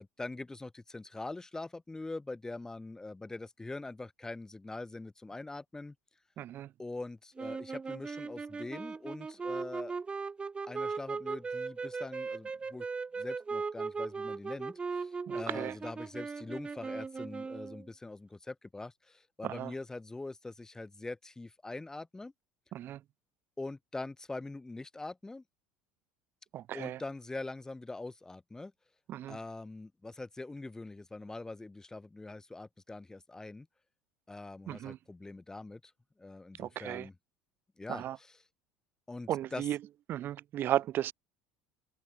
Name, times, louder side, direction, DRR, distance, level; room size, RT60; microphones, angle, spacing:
voice 1, 0.0-6.0 6.8-10.0 10.7-12.9 13.2-22.3 23.6-25.4 26.7-28.7 29.3-33.7 34.3-35.9 36.2-37.2 37.8-38.4 39.1-39.7, left 2 dB, 10° left, 1.9 m, -43 dB
voice 2, 6.4-6.7 15.3-15.7 19.4-19.7 22.7-23.0 26.5-27.0 29.1-29.4 34.7-35.0 36.6-37.1 37.9-38.2 39.3-39.8 40.1-41.1, right 12 dB, 45° right, 0.5 m, -35 dB
sound 1, 7.4-17.9, right 4 dB, 20° right, 2.9 m, -38 dB
hypercardioid pair, 90°, 5 cm